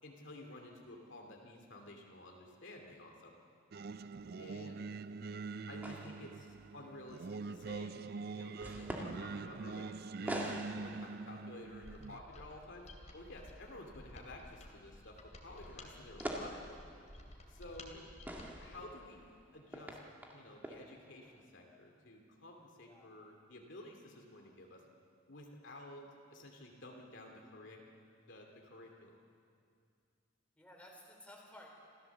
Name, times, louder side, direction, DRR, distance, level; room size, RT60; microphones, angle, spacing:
voice 1, 0.0-3.3 4.4-4.9 5.7-8.0 8.3-16.7 17.5-18.1 18.6-20.0 20.3-24.8 25.3-27.8 28.3-29.1, left 1 dB, 65° left, 1 dB, 2.6 m, -52 dB
Singing, 3.7-12.2, right 4 dB, 50° right, 0.4 m, -44 dB
sound 1, 5.8-6.9 7.3-21.4, equal, 10° right, 2.0 m, -48 dB
Mechanisms, 11.7-19.0, left 1 dB, 35° left, 2.7 m, -54 dB
voice 2, 17.5-17.8 22.8-23.1 30.6-31.7, left 1 dB, 5° left, -1 dB, 3.9 m, -57 dB
27.0 x 15.5 x 7.2 m, 2.3 s
head